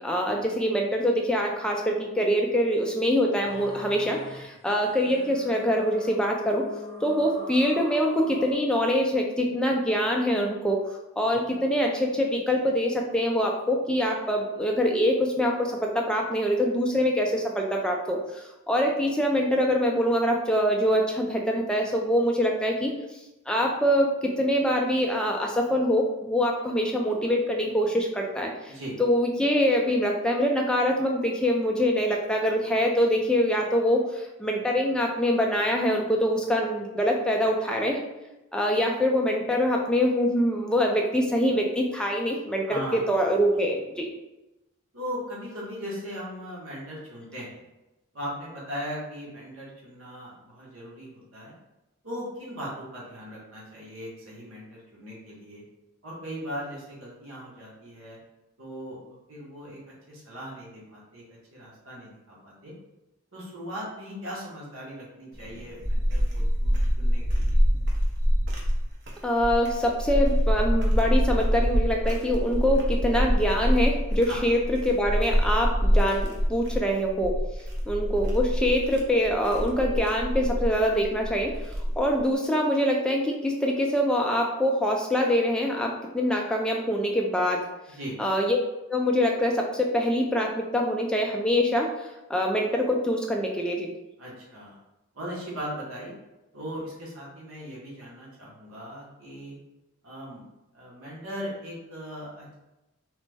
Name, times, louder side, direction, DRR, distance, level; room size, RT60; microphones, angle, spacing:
voice 1, 0.0-6.6 7.0-10.8 11.2-22.9 23.5-28.7 29.0-38.0 38.5-44.1 69.2-77.4 77.9-81.6 82.0-87.6 88.2-88.6 88.9-91.9 92.3-93.9, equal, 5° left, 0 dB, 0.3 m, -24 dB
sound 1, 3.4-8.5, left 2 dB, 45° left, 0.6 m, -42 dB
voice 2, 42.7-43.0 44.9-47.6 48.1-51.5 52.0-55.6 56.0-58.2 58.6-62.7 63.3-67.6 74.3-74.4 87.9-88.1 94.2-94.8 95.1-96.1 96.5-99.6 100.0-100.4 100.7-102.5, equal, 85° right, -5 dB, 0.9 m, -38 dB
sound 2, 65.3-82.2, equal, 55° right, 0.6 m, -25 dB
3.1 x 2.0 x 3.3 m, 0.99 s
head